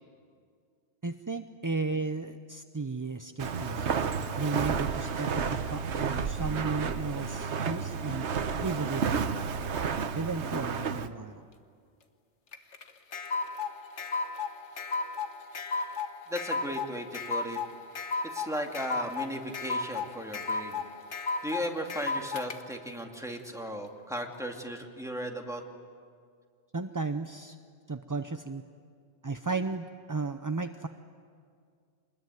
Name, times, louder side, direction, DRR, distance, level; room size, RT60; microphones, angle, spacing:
voice 1, 1.0-9.5 10.1-11.4 26.7-27.6 27.9-28.6 29.2-30.9, right 3 dB, 25° right, 8 dB, 0.5 m, -34 dB
Walk footsteps, 3.4-11.1, right 6 dB, 80° right, 1.3 m, -31 dB
sound 1, 12.5-22.6, left 4 dB, 85° left, 1.6 m, -34 dB
voice 2, 16.3-17.6 18.2-20.8 21.4-25.6, equal, 5° right, 1 dB, 2.3 m, -36 dB
26.0 x 21.0 x 9.4 m, 2.1 s
omnidirectional pair, 1.1 m